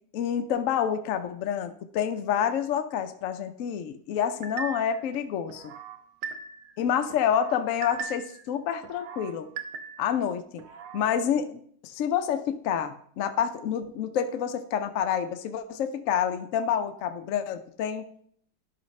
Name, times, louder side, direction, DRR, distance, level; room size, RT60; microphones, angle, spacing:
voice 1, 0.1-5.7 6.8-9.5 10.0-10.7 10.9-18.1, left 8 dB, 75° left, 9 dB, 0.7 m, -28 dB
sound 1, 4.4-5.0 5.5-6.7 7.1-8.4 8.8-10.2 10.6-11.1, right 6 dB, 85° right, 1.4 m, -39 dB
12.0 x 5.2 x 3.1 m, 0.63 s
omnidirectional pair, 2.0 m